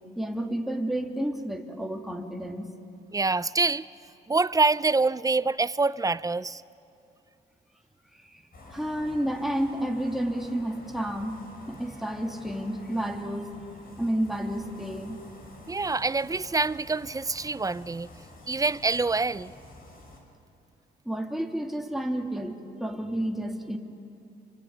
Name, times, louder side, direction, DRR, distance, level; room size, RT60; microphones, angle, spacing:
voice 1, 0.2-2.7 8.1-13.5 14.0-15.2 21.1-23.8, right 1 dB, ahead, 2 dB, 2.5 m, -31 dB
voice 2, 3.1-3.9 4.3-6.6 15.7-18.1 18.5-19.5, right 3 dB, 15° right, 18 dB, 0.5 m, -26 dB
sound 1, 8.5-20.2, left 2 dB, 45° left, 5.6 m, -49 dB
27.5 x 24.5 x 8.8 m, 2.7 s
cardioid pair, 90°, 20 cm